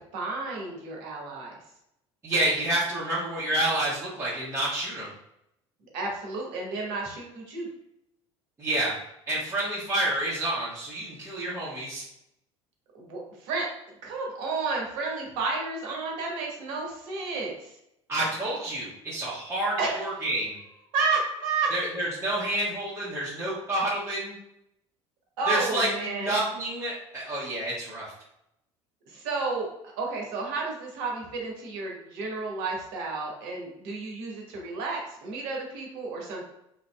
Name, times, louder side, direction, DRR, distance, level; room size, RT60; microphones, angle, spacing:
voice 1, 0.1-1.6 5.9-7.7 12.9-13.7 14.0-17.8 19.8-20.0 20.9-21.7 25.4-26.3 29.1-36.4, right 4 dB, 65° right, -1 dB, 0.9 m, -31 dB
voice 2, 2.2-5.1 8.6-9.0 9.3-12.0 18.1-20.6 21.7-24.3 25.5-28.0, right 1 dB, 15° right, -8 dB, 1.0 m, -29 dB
3.0 x 2.5 x 2.2 m, 0.80 s
hypercardioid pair, 65°, 15 cm